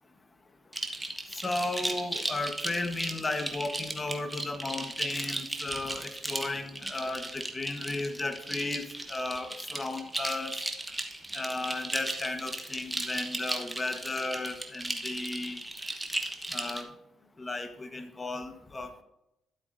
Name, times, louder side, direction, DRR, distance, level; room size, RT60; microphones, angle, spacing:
sound 1, 0.7-16.8, right 2 dB, 10° right, 1.1 m, -36 dB
voice 1, 1.4-10.5 11.3-15.6 16.5-16.9 17.4-19.0, left 2 dB, 25° left, 7 dB, 1.3 m, -34 dB
13.0 x 7.9 x 2.6 m, 0.83 s
cardioid pair, 95°, 0 cm